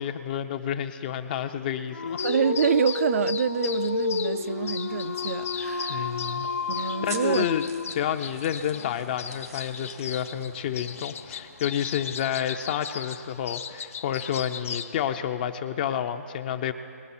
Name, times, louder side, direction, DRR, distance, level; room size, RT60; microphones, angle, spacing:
voice 1, 0.0-2.3 5.9-6.5 6.8-7.6 7.9-16.7, left 9 dB, 35° left, 0.5 m, -30 dB
Dog, 1.9-8.3, left 4 dB, 85° left, 0.6 m, -30 dB
sound 1, 2.2-15.0, left 7 dB, 60° left, 0.9 m, -38 dB
voice 2, 2.2-7.5, right 7 dB, 60° right, 0.5 m, -27 dB
sound 2, 3.5-11.8, right 3 dB, 90° right, 2.4 m, -48 dB
20.5 x 7.8 x 4.3 m
hypercardioid pair, 150°, 8 cm